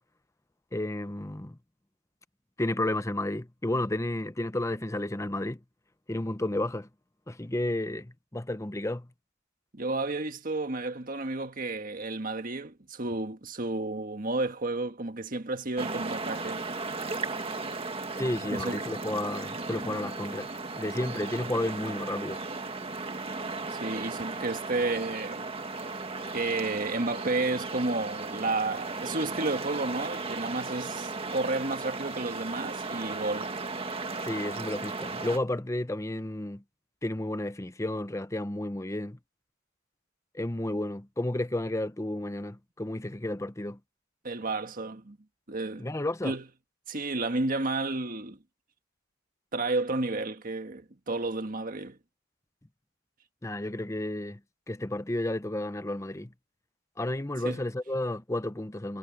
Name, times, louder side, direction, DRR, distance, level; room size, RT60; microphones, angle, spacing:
voice 1, 0.7-1.6 2.6-5.6 6.1-6.9 7.3-9.1 18.2-20.5 20.7-22.4 34.2-36.6 37.0-39.2 40.3-43.8 45.8-46.3 53.4-54.4 54.7-56.3 57.0-59.0, left 1 dB, 15° left, 0.8 m, -32 dB
voice 2, 9.7-16.6 18.5-18.8 23.7-25.5 26.3-33.5 44.2-45.2 45.5-45.9 46.2-46.4 46.9-48.4 49.5-52.0 57.4-57.6, right 2 dB, 45° right, 1.6 m, -31 dB
sound 1, 15.8-35.4, right 3 dB, 30° right, 1.8 m, -36 dB
head